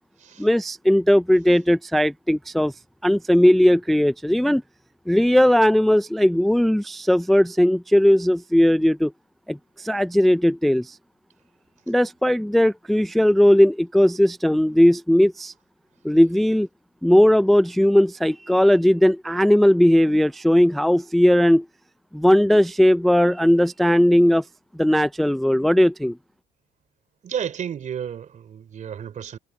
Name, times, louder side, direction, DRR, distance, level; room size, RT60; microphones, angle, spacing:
voice 1, 0.4-2.7 3.0-4.6 5.1-9.1 9.5-11.0 11.9-15.5 16.0-16.7 17.0-21.7 22.1-24.4 24.8-26.2, equal, ahead, 0.3 m, -18 dB
voice 2, 27.2-29.4, right 8 dB, 45° right, 3.5 m, -32 dB
cardioid pair, 110°, 17 cm